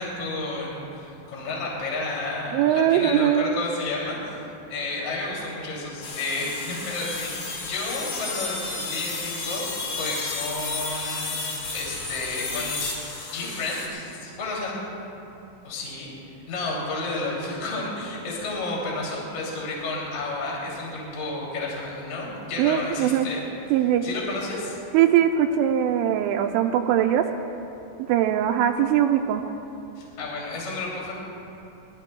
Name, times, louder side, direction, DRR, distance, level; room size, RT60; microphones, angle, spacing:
voice 1, 0.0-4.4 4.7-11.3 11.7-12.9 13.3-14.8 15.6-16.1 16.5-23.4 24.0-24.8 30.0-31.1, left 2 dB, 40° left, -4 dB, 3.7 m, -31 dB
voice 2, 2.5-3.6 22.6-23.3 23.7-24.0 24.9-27.3 28.1-29.4, right 10 dB, 85° right, 2 dB, 3.0 m, -21 dB
sound 1, 6.0-13.9, left 3 dB, 70° left, 4.8 m, -32 dB
24.5 x 20.0 x 2.3 m, 2.8 s
omnidirectional pair, 5.6 m